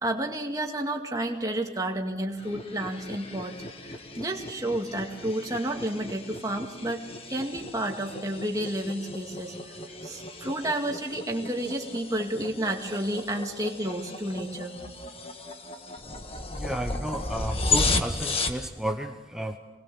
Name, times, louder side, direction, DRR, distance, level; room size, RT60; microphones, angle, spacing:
voice 1, 0.0-3.5 4.2-9.8 10.0-14.7, right 1 dB, 20° right, 2 dB, 2.2 m, -31 dB
sound 1, 2.4-18.7, left 3 dB, 30° left, 1.5 m, -34 dB
voice 2, 16.5-19.6, right 1 dB, 5° right, 4 dB, 0.8 m, -33 dB
27.0 x 20.0 x 7.0 m, 1.3 s
head